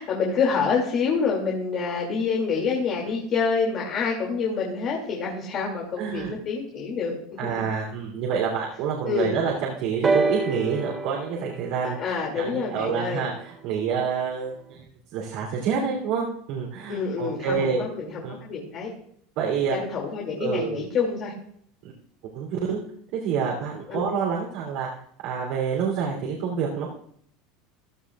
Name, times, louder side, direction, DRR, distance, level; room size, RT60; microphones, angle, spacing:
voice 1, 0.0-7.7 9.0-9.4 11.8-13.2 16.9-18.9 19.7-21.3 23.9-24.0, left 5 dB, 40° left, -2 dB, 2.6 m, -27 dB
voice 2, 6.0-6.3 7.4-14.8 15.1-17.8 18.2-18.4 19.4-19.8 20.4-20.8 21.8-21.9 22.3-22.8 23.1-24.9 25.2-26.9, right 6 dB, 65° right, -2 dB, 3.2 m, -27 dB
sound 1, 10.0-13.9 14.8-14.9, right 3 dB, 20° right, 1.2 m, -29 dB
15.5 x 12.5 x 2.5 m, 0.64 s
supercardioid pair, 125°, 0 cm